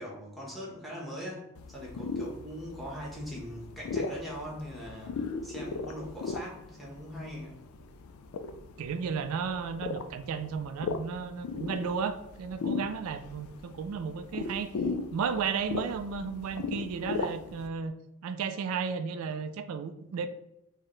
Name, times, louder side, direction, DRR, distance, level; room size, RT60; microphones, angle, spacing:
voice 1, 0.0-7.6, equal, ahead, -4 dB, 1.0 m, -41 dB
sound 1, 1.6-17.7, left 4 dB, 80° left, 0.3 m, -37 dB
voice 2, 8.8-14.7 15.1-17.9 18.2-20.3, right 6 dB, 85° right, 10 dB, 0.3 m, -33 dB
4.6 x 2.1 x 3.1 m, 0.86 s
head